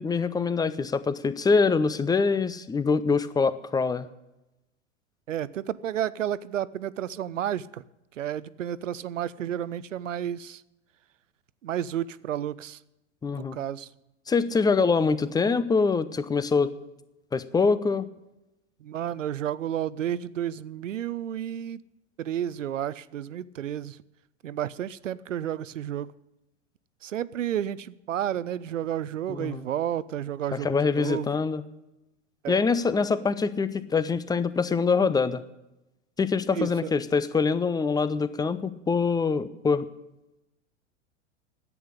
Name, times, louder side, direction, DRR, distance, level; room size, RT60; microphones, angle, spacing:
voice 1, 0.0-4.1 13.2-13.6 14.3-16.7 17.3-18.1 29.3-29.7 30.5-31.6 32.5-35.4 36.2-39.8, left 4 dB, 10° left, 15 dB, 0.6 m, -24 dB
voice 2, 5.3-7.8 8.2-10.6 11.6-12.8 13.3-13.9 18.8-21.8 22.2-24.0 24.4-26.1 27.0-31.3 32.4-32.6 36.5-36.9, right 10 dB, 80° right, 18 dB, 0.6 m, -31 dB
11.0 x 8.6 x 9.8 m, 0.93 s
hypercardioid pair, 95°, 37 cm